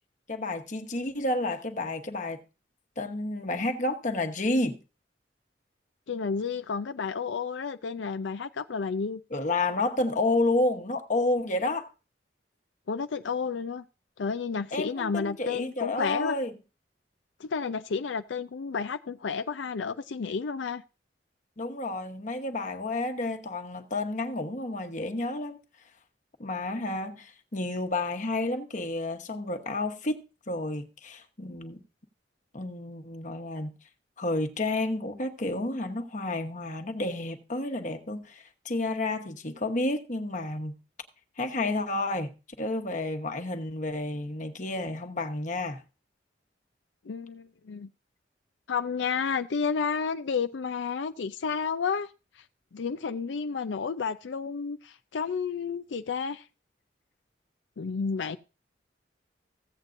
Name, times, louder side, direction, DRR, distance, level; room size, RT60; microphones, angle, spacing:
voice 1, 0.3-2.4 3.0-4.8 9.3-11.9 14.7-16.5 21.6-25.6 26.4-31.8 32.5-33.7 34.2-40.8 41.4-42.3 42.6-45.8, left 2 dB, 45° left, 1.1 m, -30 dB
voice 2, 6.1-9.2 12.9-13.8 14.2-16.3 17.4-20.8 47.1-47.9 48.7-52.1 52.7-56.4 57.8-58.4, left 5 dB, 85° left, 0.5 m, -31 dB
15.5 x 8.2 x 2.6 m
head